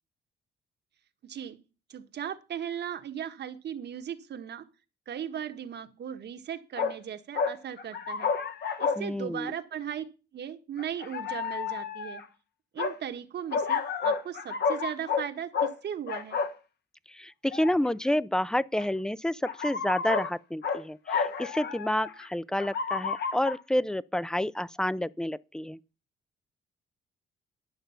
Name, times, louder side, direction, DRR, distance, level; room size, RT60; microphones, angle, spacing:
voice 1, 1.2-1.6 1.9-4.6 5.1-8.3 8.8-10.0 10.3-12.2 12.7-16.4, right 9 dB, 60° right, 1.4 m, -37 dB
sound 1, 6.8-7.0 7.3-9.0 9.5-9.6 10.8-12.2 12.8-13.0 13.5-15.3 15.5-15.7 16.1-16.5 17.5-17.9 18.8-18.9 19.4-20.3 20.6-20.8 21.1-22.3 22.6-23.5, left 6 dB, 55° left, 1.4 m, -30 dB
voice 2, 9.0-9.5 17.1-25.8, left 1 dB, 5° left, 0.4 m, -29 dB
11.5 x 6.6 x 5.6 m
cardioid pair, 90°, 20 cm